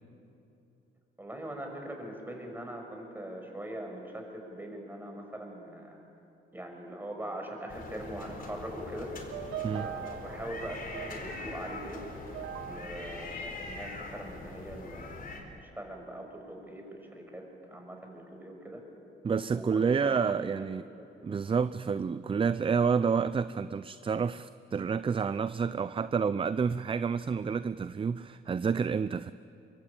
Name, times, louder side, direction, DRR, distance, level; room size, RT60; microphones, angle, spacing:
voice 1, 1.2-6.0 6.5-9.1 9.7-12.0 12.6-18.8 19.5-20.7, right 1 dB, 10° right, 6.4 m, -42 dB
sound 1, 7.7-15.4, left 3 dB, 45° left, 4.2 m, -42 dB
sound 2, 9.1-14.4, right 11 dB, 85° right, 1.2 m, -43 dB
voice 2, 19.2-20.8 21.2-29.3, right 6 dB, 25° right, 0.5 m, -29 dB
24.0 x 23.0 x 8.8 m
cardioid pair, 90°, 20 cm